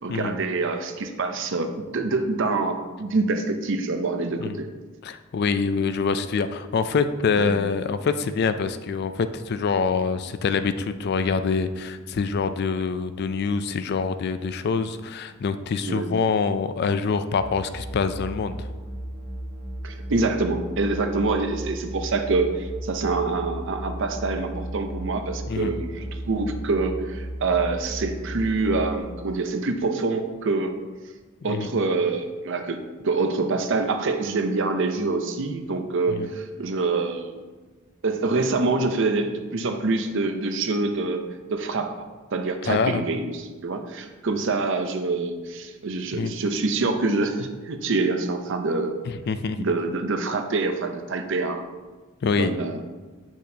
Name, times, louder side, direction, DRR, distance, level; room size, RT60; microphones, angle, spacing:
voice 1, 0.0-4.7 7.4-7.5 15.9-16.1 19.8-30.7 31.4-32.8 33.0-37.4 38.0-48.9 49.6-51.6 52.4-52.8, right 3 dB, 60° right, 7 dB, 0.6 m, -26 dB
voice 2, 5.0-18.7 25.5-25.7 31.5-31.7 36.1-36.3 42.7-43.0 46.1-46.3 49.3-49.6 52.2-52.5, left 5 dB, 50° left, 11 dB, 0.3 m, -25 dB
sound 1, 17.3-29.0, right 1 dB, 85° right, 1.2 m, -35 dB
8.4 x 6.2 x 2.8 m, 1.3 s
head